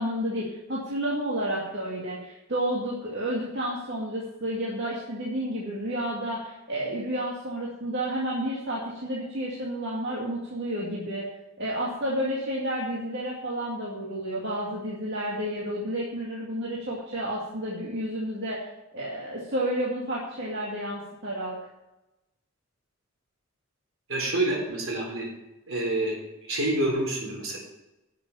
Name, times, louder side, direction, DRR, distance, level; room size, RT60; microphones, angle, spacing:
voice 1, 0.0-11.2 11.6-18.6 18.9-21.6, right 1 dB, 55° right, -5 dB, 2.3 m, -31 dB
voice 2, 24.1-25.3 25.7-26.2 26.5-27.6, right 1 dB, 75° right, 0 dB, 4.1 m, -27 dB
11.0 x 6.9 x 7.2 m, 0.97 s
head